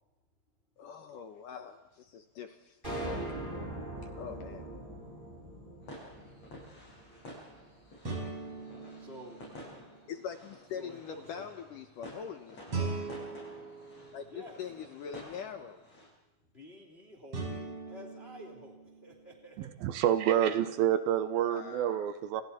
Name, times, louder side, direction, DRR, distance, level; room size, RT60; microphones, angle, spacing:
voice 1, 0.8-3.0 4.2-4.7 10.1-12.9 14.1-15.8 21.4-22.1, left 7 dB, 70° left, 7 dB, 2.3 m, -43 dB
sound 1, 2.8-7.3, right 1 dB, 10° right, 5.1 m, -41 dB
sound 2, 4.1-5.1 8.1-10.2 12.7-14.9 17.3-19.5, right 4 dB, 35° right, 5.5 m, -41 dB
sound 3, 5.8-16.1, left 1 dB, 40° left, 9.1 m, -51 dB
voice 2, 9.0-9.4 10.8-11.5 14.2-14.6 16.5-19.7 20.2-20.4, equal, 15° left, 2 dB, 2.7 m, -50 dB
voice 3, 19.8-22.4, right 10 dB, 70° right, 11 dB, 2.6 m, -28 dB
29.5 x 28.0 x 4.3 m, 1.0 s
omnidirectional pair, 4.7 m